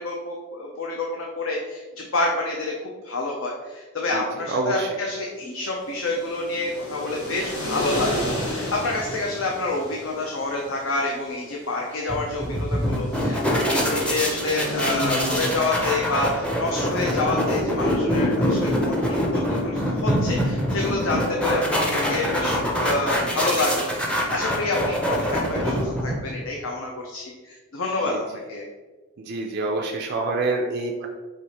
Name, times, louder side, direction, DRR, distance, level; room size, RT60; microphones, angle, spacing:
voice 1, 0.0-2.7 3.0-18.9 19.3-28.7, left 2 dB, 65° left, -1 dB, 0.6 m, -28 dB
voice 2, 4.1-5.0 24.3-24.4 28.0-28.2 29.2-31.1, right 3 dB, 50° right, 1 dB, 0.4 m, -27 dB
sound 1, 5.7-23.6, equal, 90° left, 1.2 m, -34 dB
sound 2, 12.1-26.4, equal, 5° left, 0.5 m, -24 dB
4.6 x 2.5 x 4.1 m, 1.3 s
head